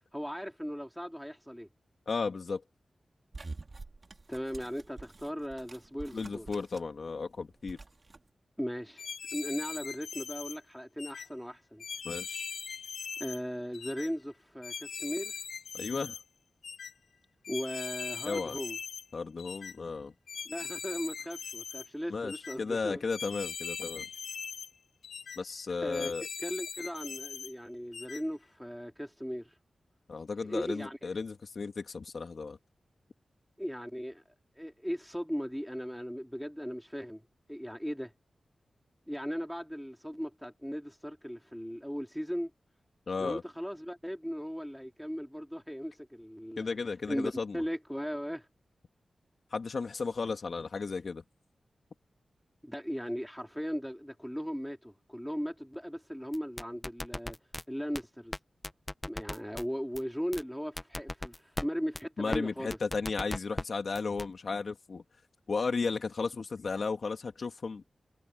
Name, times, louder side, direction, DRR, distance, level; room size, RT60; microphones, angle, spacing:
voice 1, 0.1-1.7 4.3-6.5 8.6-11.8 13.2-15.4 17.5-18.8 20.4-23.0 25.8-29.5 30.3-31.0 33.6-34.2 34.6-37.2 37.5-38.1 39.1-42.5 43.2-46.8 47.1-48.5 52.6-57.4 57.7-58.3 59.0-62.8, equal, ahead, 3.9 m, -37 dB
voice 2, 2.1-2.6 6.1-7.8 12.0-12.5 15.7-16.2 18.2-18.6 19.1-20.1 22.1-22.3 22.6-24.1 25.4-26.2 30.1-32.6 43.1-43.4 46.6-47.6 49.5-51.2 62.2-65.0 65.5-67.8, left 4 dB, 65° left, 2.6 m, -34 dB
sound 1, 3.3-7.0 7.3-8.2, right 3 dB, 40° right, 3.6 m, -47 dB
sound 2, 9.0-10.6 11.0-11.3 11.8-13.4 13.7-14.1 14.6-16.2 16.6-16.9 17.4-19.1 19.4-19.7 20.3-21.9 22.3-22.6 23.1-24.7 25.0-25.4 25.9-27.5 27.9-28.2, left 6 dB, 85° left, 4.4 m, -41 dB
sound 3, 56.3-57.6 58.0-58.1 58.3-58.4 58.6-59.6 60.0-60.1 60.3-60.4 60.8-61.7 62.0-62.1 62.3-62.4 62.7-63.6 64.0-64.3, left 1 dB, 20° left, 1.1 m, -36 dB
cardioid pair, 65°, 0 cm